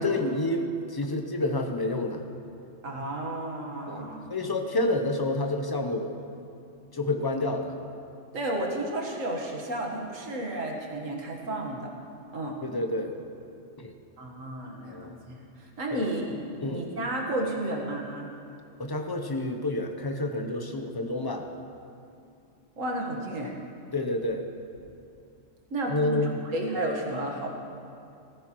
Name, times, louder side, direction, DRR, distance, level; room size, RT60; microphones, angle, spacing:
voice 1, 0.0-2.2 3.9-6.1 6.9-7.8 12.6-13.1 13.8-13.9 14.9-15.2 15.9-16.1 16.6-16.9 18.8-21.5 23.9-24.4 25.9-26.4, left 2 dB, 25° left, 4 dB, 0.6 m, -29 dB
voice 2, 2.8-4.2 8.3-11.9 12.3-12.6 14.2-16.2 16.6-18.3 22.8-23.5 25.7-27.5, right 1 dB, 85° right, 0 dB, 1.9 m, -32 dB
15.0 x 14.5 x 3.1 m, 2.5 s
omnidirectional pair, 1.3 m